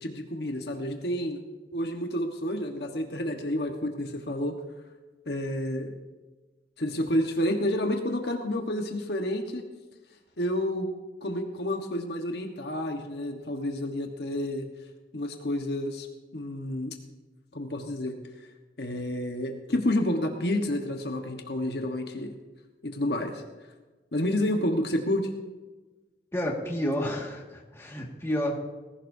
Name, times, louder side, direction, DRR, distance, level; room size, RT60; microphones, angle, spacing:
voice 1, 0.0-1.4 1.7-4.5 5.3-6.0 6.8-9.6 10.4-10.9 11.2-14.7 15.1-16.1 16.3-16.9 17.5-18.2 18.8-22.3 22.8-23.4 24.1-25.3, left 1 dB, 60° left, 3 dB, 1.3 m, -29 dB
voice 2, 26.3-28.6, equal, 15° left, -1 dB, 1.9 m, -30 dB
19.5 x 16.0 x 2.7 m, 1.2 s
head